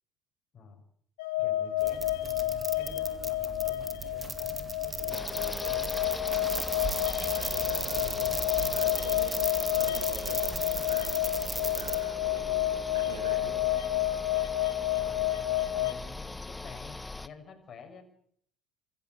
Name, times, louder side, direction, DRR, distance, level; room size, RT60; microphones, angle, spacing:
sound 1, 1.2-15.9, left 15 dB, 65° left, 1.6 m, -30 dB
voice 1, 1.4-5.9 8.0-8.4 14.9-18.0, left 5 dB, 35° left, 4 dB, 7.2 m, -49 dB
sound 2, 1.8-12.0, right 3 dB, 20° right, 3.0 m, -37 dB
sound 3, 5.1-17.3, left 2 dB, 10° left, 1.0 m, -41 dB
voice 2, 7.3-13.6, right 4 dB, 75° right, 4 dB, 7.0 m, -45 dB
26.5 x 15.0 x 9.6 m, 0.65 s
figure-of-eight pair, 60°, 0 cm